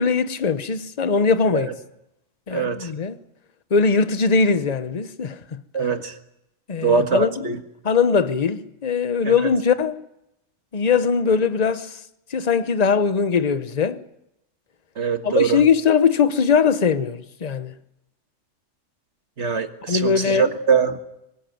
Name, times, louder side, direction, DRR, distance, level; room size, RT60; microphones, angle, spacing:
voice 1, 0.0-1.7 2.5-3.2 3.7-5.9 6.7-7.5 7.8-10.0 10.7-12.0 12.3-14.0 15.2-17.8 19.9-20.5, left 5 dB, 35° left, 1.0 m, -21 dB
voice 2, 2.5-2.9 5.7-6.1 6.8-7.6 9.2-9.3 15.0-15.6 19.4-21.0, right 6 dB, 60° right, 1.9 m, -22 dB
23.5 x 20.0 x 9.3 m
omnidirectional pair, 1.4 m